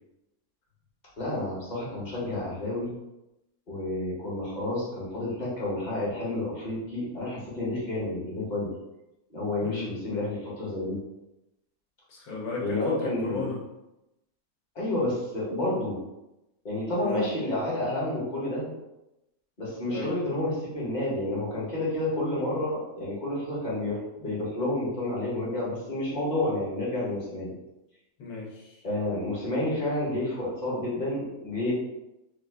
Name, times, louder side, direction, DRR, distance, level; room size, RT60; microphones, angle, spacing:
voice 1, 1.2-2.9 3.7-8.7 9.3-11.0 12.6-13.5 14.7-16.0 16.6-18.7 19.6-27.5 28.8-31.7, left 1 dB, 35° left, -7 dB, 1.1 m, -30 dB
voice 2, 12.1-13.6 17.0-17.2 19.9-20.1 28.2-28.8, left 4 dB, 75° left, -3 dB, 1.4 m, -35 dB
3.0 x 2.3 x 3.4 m, 0.93 s
omnidirectional pair, 1.6 m